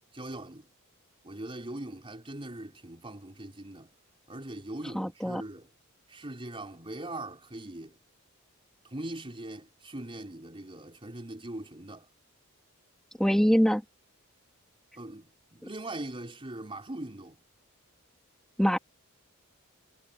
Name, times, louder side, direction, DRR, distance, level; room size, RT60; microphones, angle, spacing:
voice 1, 0.1-0.7 1.2-3.9 4.3-5.7 6.1-8.0 8.8-12.1 15.0-17.4, right 1 dB, 25° right, 4.0 m, -41 dB
voice 2, 4.9-5.4 13.2-13.8 18.6-18.8, equal, ahead, 2.5 m, -23 dB
head